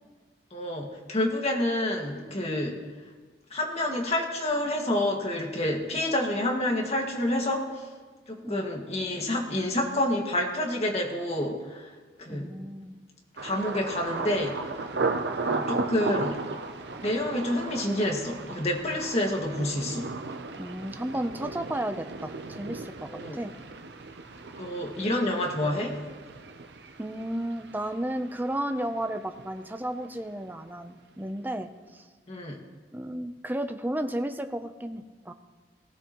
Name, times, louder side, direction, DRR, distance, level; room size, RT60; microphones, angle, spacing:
voice 1, 0.5-2.8 3.5-7.8 8.3-11.9 12.2-12.5 13.4-14.6 15.4-16.4 17.0-20.1 23.1-23.4 24.6-26.0 32.3-32.6, left 1 dB, 35° left, 0 dB, 1.9 m, -28 dB
voice 2, 12.3-13.0 20.6-23.5 27.0-32.1 32.9-35.3, right 1 dB, 10° right, 7 dB, 0.6 m, -33 dB
Thunder, 13.4-29.1 29.4-30.0 30.4-30.7, right 3 dB, 70° right, 0.8 m, -36 dB
18.5 x 16.0 x 3.1 m, 1.4 s
head